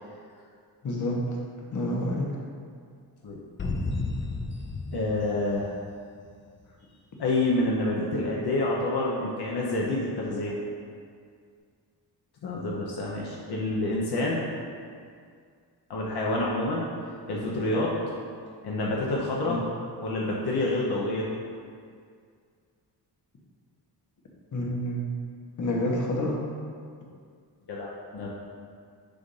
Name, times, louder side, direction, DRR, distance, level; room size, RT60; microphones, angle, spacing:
voice 1, 0.8-1.2 1.7-2.3 19.5-19.6 24.5-25.0 25.6-26.4, left 1 dB, 45° left, -2 dB, 1.0 m, -28 dB
sound 1, 3.6-6.3, left 3 dB, 30° left, 0.5 m, -33 dB
voice 2, 4.9-5.8 7.2-10.5 12.4-14.5 15.9-16.9 17.3-18.0 18.6-19.6 20.0-21.3 27.7-28.3, left 2 dB, 65° left, -4 dB, 0.8 m, -28 dB
6.9 x 2.5 x 5.4 m, 2.2 s
wide cardioid pair, 130°, 42 cm